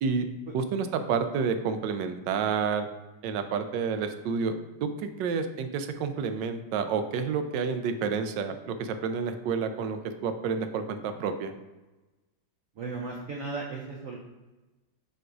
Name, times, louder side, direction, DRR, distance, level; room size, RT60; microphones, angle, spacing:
voice 1, 0.5-2.9 3.2-4.5 4.8-11.5, right 6 dB, 75° right, 8 dB, 1.2 m, -29 dB
voice 2, 12.8-14.2, right 3 dB, 60° right, -2 dB, 0.9 m, -35 dB
7.8 x 2.6 x 4.7 m, 1.1 s
omnidirectional pair, 2.1 m